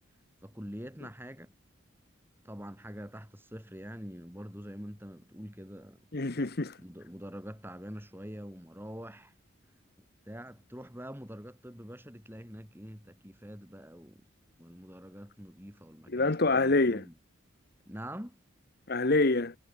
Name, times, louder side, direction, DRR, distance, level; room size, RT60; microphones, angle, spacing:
voice 1, 0.4-1.5 2.4-6.0 6.8-9.3 10.2-14.2 14.6-17.1 17.9-18.4, equal, 10° right, 6.5 m, -45 dB
voice 2, 6.1-6.8 16.1-17.0 18.9-19.6, left 2 dB, 50° left, 1.0 m, -26 dB
head